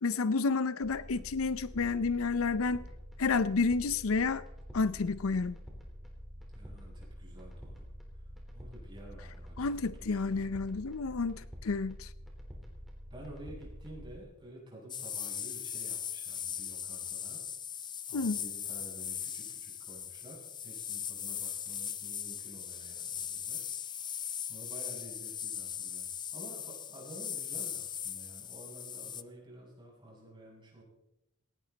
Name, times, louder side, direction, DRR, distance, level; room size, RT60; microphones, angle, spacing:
voice 1, 0.0-2.8 3.2-4.4 4.7-5.6 9.6-12.1 18.1-18.4, left 4 dB, 70° left, 0.6 m, -30 dB
sound 1, 0.8-14.2, equal, ahead, 3.9 m, -47 dB
voice 2, 6.5-7.9 8.5-10.5 13.1-17.4 18.1-23.6 24.5-30.8, right 1 dB, 20° right, 7.3 m, -51 dB
sound 2, 14.9-29.2, left 8 dB, 20° left, 0.5 m, -39 dB
18.5 x 18.0 x 4.1 m
head